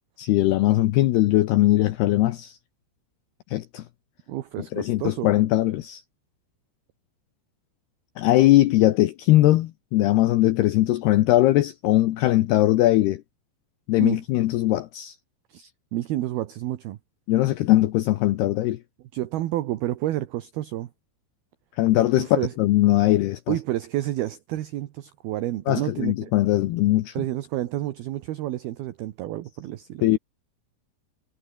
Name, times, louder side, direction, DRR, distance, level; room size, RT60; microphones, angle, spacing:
voice 1, 0.2-2.6 3.5-3.8 4.7-6.0 8.2-13.2 13.9-15.2 17.3-18.8 21.8-23.5 25.7-27.2 30.0-30.2, left 15 dB, 70° left, 2.7 m, -20 dB
voice 2, 4.3-5.3 14.0-14.2 15.5-17.0 19.1-20.9 22.2-22.5 23.5-26.3 27.1-30.2, right 14 dB, 70° right, 2.7 m, -30 dB
omnidirectional pair, 5.4 m